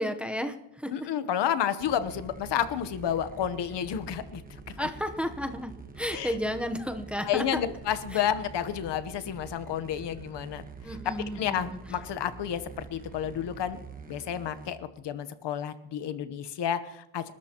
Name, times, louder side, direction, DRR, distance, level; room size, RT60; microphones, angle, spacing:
voice 1, 0.0-0.9 4.8-7.6 8.1-8.3 10.8-11.8, equal, 5° right, 6 dB, 0.9 m, -32 dB
voice 2, 0.9-4.4 4.8-4.9 6.1-6.3 7.3-11.0 11.3-13.8 14.1-17.3, left 9 dB, 70° left, 12 dB, 1.1 m, -31 dB
sound 1, 1.8-14.7, right 4 dB, 20° right, 1.3 m, -46 dB
28.5 x 13.0 x 3.0 m, 0.86 s
cardioid pair, 150°, 43 cm